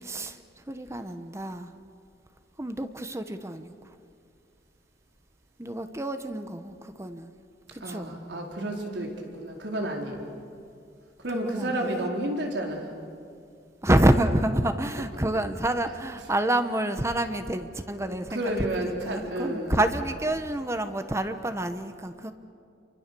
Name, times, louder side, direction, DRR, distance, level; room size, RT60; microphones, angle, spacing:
voice 1, 0.0-1.7 2.6-3.7 5.6-7.3 7.7-8.1 11.3-12.0 13.8-22.3, right 1 dB, 15° right, 9 dB, 1.0 m, -28 dB
voice 2, 7.8-10.3 11.2-12.9 18.3-19.8, right 1 dB, 85° right, 1 dB, 4.2 m, -31 dB
29.5 x 24.5 x 6.9 m, 2.3 s
head